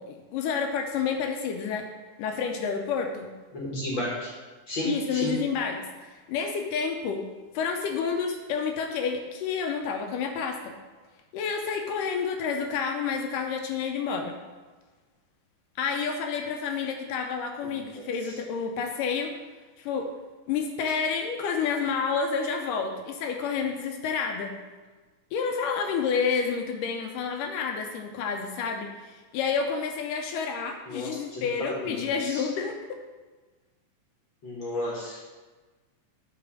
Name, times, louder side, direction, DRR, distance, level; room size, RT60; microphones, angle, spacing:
voice 1, 0.0-1.9 2.2-3.3 4.8-7.2 7.5-10.6 11.3-14.3 15.8-19.3 19.8-20.1 20.5-24.5 25.3-33.0, left 6 dB, 80° left, 4 dB, 2.1 m, -29 dB
voice 2, 3.5-4.3 4.7-5.3 30.9-32.0 32.3-32.4 34.4-35.3, left 1 dB, 50° left, -4 dB, 1.4 m, -32 dB
8.3 x 4.3 x 6.1 m, 1.3 s
omnidirectional pair, 4.0 m